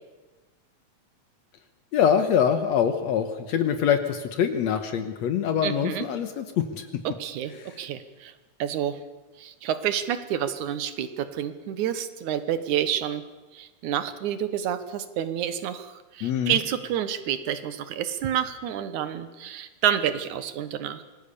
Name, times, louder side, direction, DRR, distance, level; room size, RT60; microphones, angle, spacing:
voice 1, 1.9-6.9 16.2-16.6, left 8 dB, 70° left, 8 dB, 2.2 m, -24 dB
voice 2, 5.6-6.1 7.0-8.3 8.6-9.0 9.4-13.2 13.5-21.0, right 10 dB, 80° right, 12 dB, 2.7 m, -29 dB
25.5 x 19.5 x 7.0 m, 1.2 s
omnidirectional pair, 3.4 m